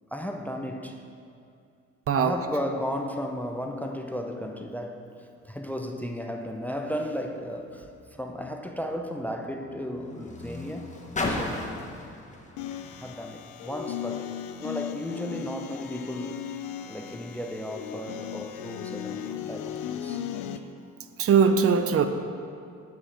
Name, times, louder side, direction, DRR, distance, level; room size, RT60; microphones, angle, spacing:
voice 1, 0.1-1.0 2.2-5.0 5.4-10.9 11.2-11.9 13.0-14.3 14.6-16.5 16.9-20.5, equal, 5° left, 4 dB, 0.4 m, -34 dB
Car, 7.6-14.1 15.0-15.1, left 2 dB, 25° left, 1.0 m, -37 dB
sound 1, 12.6-20.6, left 10 dB, 90° left, 0.5 m, -37 dB
voice 2, 21.2-22.0, right 6 dB, 50° right, 8 dB, 0.5 m, -20 dB
6.2 x 5.1 x 6.4 m, 2.4 s
cardioid pair, 90°, 30 cm